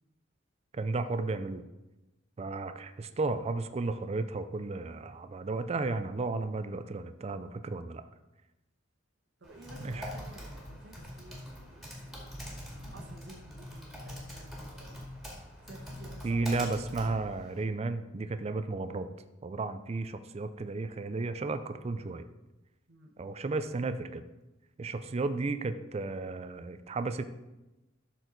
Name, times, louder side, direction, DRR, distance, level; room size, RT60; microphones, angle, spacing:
voice 1, 0.7-1.6 2.4-8.0 9.8-10.1 16.2-19.1 19.4-22.3 23.2-24.2 24.8-27.2, right 3 dB, 30° right, 10 dB, 0.4 m, -33 dB
Typing, 9.4-17.6, equal, ahead, 2.0 m, -44 dB
voice 2, 9.4-15.0 15.6-16.7 22.9-23.1, right 2 dB, 60° right, 1 dB, 1.2 m, -53 dB
12.0 x 4.6 x 3.9 m, 1.0 s
head